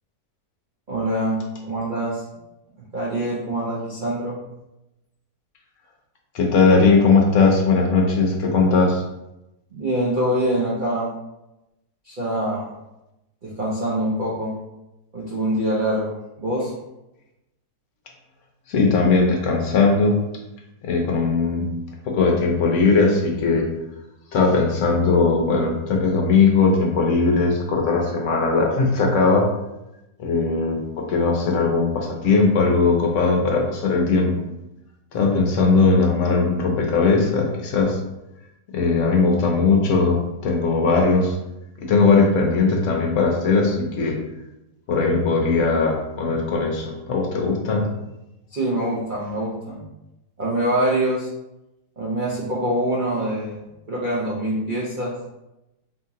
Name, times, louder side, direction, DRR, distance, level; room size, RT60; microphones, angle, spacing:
voice 1, 0.9-2.2 2.9-4.4 9.7-11.1 12.0-12.7 13.4-14.6 15.1-16.7 48.5-49.8 50.4-51.3 52.0-55.1, right 1 dB, 75° right, -7 dB, 0.4 m, -24 dB
voice 2, 6.3-9.0 18.7-20.2 20.8-21.7 22.1-23.7 24.3-29.5 30.2-34.3 35.1-38.0 38.7-41.4 41.8-44.2 44.9-47.9, left 4 dB, 60° left, 1 dB, 0.8 m, -19 dB
2.8 x 2.8 x 3.6 m, 0.92 s
omnidirectional pair, 1.8 m